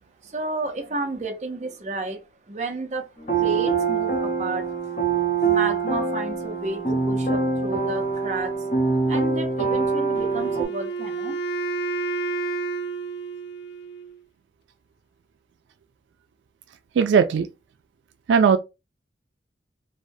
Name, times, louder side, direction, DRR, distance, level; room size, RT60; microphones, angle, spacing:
voice 1, 0.2-2.2 2.5-3.1 3.4-4.8 5.4-8.5 9.1-11.4, right 2 dB, 40° right, 0.6 m, -31 dB
sound 1, 3.2-10.6, right 5 dB, 40° left, 0.9 m, -24 dB
Wind instrument woodwind instrument, 10.1-14.2, right 3 dB, 75° left, 0.4 m, -30 dB
voice 2, 17.0-17.5 18.3-18.6, right 6 dB, 85° right, 0.3 m, -17 dB
3.2 x 2.1 x 2.6 m
head